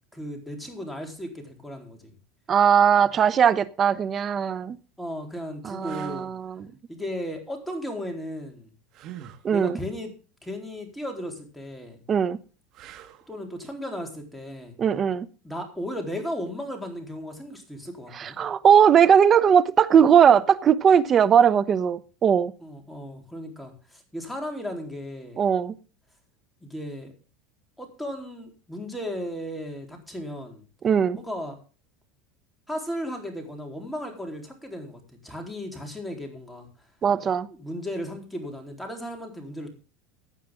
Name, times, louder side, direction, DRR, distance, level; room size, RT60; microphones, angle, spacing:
voice 1, 0.1-2.1 5.0-6.3 6.9-8.7 9.5-10.1 10.4-12.0 13.3-14.7 15.4-18.4 22.6-25.5 26.6-27.1 27.8-30.6 31.2-31.6 32.7-36.7 37.5-39.7, equal, ahead, 4.0 m, -35 dB
voice 2, 2.5-4.8 5.6-6.7 9.4-9.8 12.1-12.4 14.8-15.3 18.1-22.5 25.4-25.7 30.8-31.2 37.0-37.5, right 8 dB, 30° right, 0.9 m, -19 dB
sound 1, 4.2-4.4 5.1-5.2 5.8-6.3 8.9-9.5 12.7-13.3 16.3-16.5, right 11 dB, 50° right, 1.8 m, -44 dB
16.0 x 9.2 x 3.8 m
supercardioid pair, 120°, 0 cm